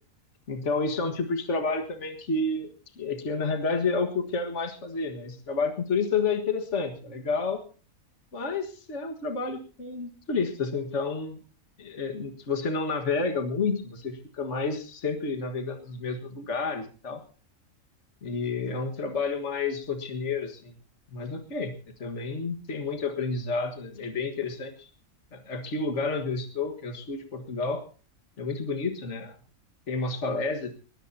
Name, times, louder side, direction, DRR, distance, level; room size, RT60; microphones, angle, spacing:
voice 1, 0.5-2.7 3.0-7.6 8.3-11.4 11.8-17.2 18.2-20.7 21.1-21.7 22.0-24.9 25.3-27.8 28.4-29.4 29.9-30.7, left 4 dB, 55° left, 6 dB, 2.0 m, -30 dB
21.0 x 20.0 x 2.8 m, 0.37 s
omnidirectional pair, 1.4 m